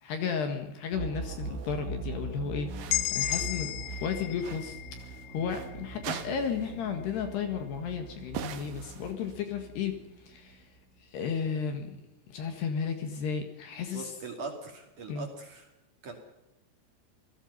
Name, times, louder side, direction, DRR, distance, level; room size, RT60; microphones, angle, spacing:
voice 1, 0.0-3.7 4.0-4.8 5.3-10.7 11.0-11.9 12.3-14.1 15.1-15.3, left 6 dB, 65° left, 6 dB, 3.3 m, -33 dB
sound 1, 0.9-10.8, right 3 dB, 60° right, 2.5 m, -41 dB
sound 2, 1.4-1.7 2.7-3.6 3.9-5.7 6.0-6.8 7.1-7.3 8.3-9.5, right 9 dB, 85° right, 1.9 m, -42 dB
sound 3, 2.9-6.7, left 15 dB, 90° left, 3.6 m, -35 dB
voice 2, 13.9-15.7 16.0-16.1, right 3 dB, 45° right, 2 dB, 3.4 m, -41 dB
27.5 x 17.5 x 5.6 m, 0.97 s
omnidirectional pair, 6.0 m